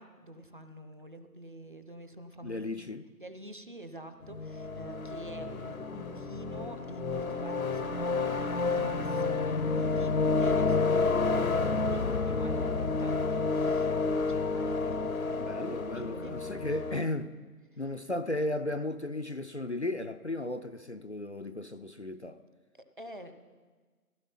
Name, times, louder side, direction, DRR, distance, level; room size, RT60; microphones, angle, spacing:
voice 1, 0.0-17.0 17.7-17.8 22.7-23.3, right 1 dB, 35° right, 0.8 m, -48 dB
voice 2, 2.4-3.1 15.4-17.3 17.8-22.4, left 2 dB, 45° left, 0.5 m, -35 dB
sound 1, 4.2-17.0, left 4 dB, 60° left, 0.9 m, -30 dB
15.5 x 15.0 x 5.7 m
figure-of-eight pair, 160°, 47 cm